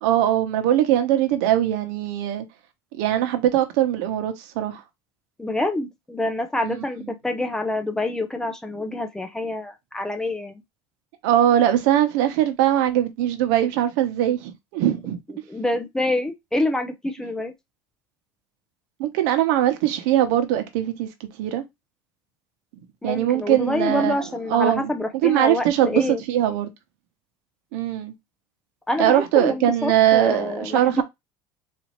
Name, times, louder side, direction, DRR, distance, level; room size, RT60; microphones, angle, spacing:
voice 1, 0.0-2.5 3.0-4.8 6.6-6.7 11.2-15.2 19.0-21.1 21.4-21.6 23.0-24.2 24.5-24.9 25.2-26.7 27.7-28.1 29.0-31.0, right 12 dB, 75° right, 1.0 m, -21 dB
voice 2, 5.4-10.6 15.5-17.5 23.0-26.2 28.9-31.0, left 2 dB, 5° left, 0.5 m, -26 dB
4.1 x 2.7 x 3.1 m
cardioid pair, 145°, 9 cm